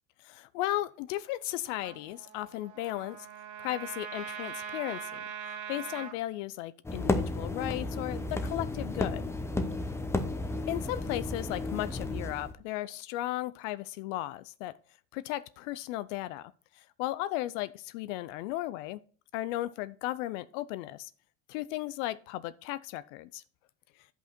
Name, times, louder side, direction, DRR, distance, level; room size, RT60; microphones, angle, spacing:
voice 1, 0.2-3.2 3.6-5.2 5.7-9.3 10.7-14.7 15.1-16.5 17.0-19.0 19.3-21.1 21.5-23.4, left 15 dB, 75° left, 0.6 m, -35 dB
Trumpet, 1.8-6.1, right 7 dB, 50° right, 2.1 m, -41 dB
sound 1, 6.8-12.5, left 2 dB, 5° left, 0.6 m, -33 dB
9.4 x 5.5 x 4.3 m
supercardioid pair, 135°, 37 cm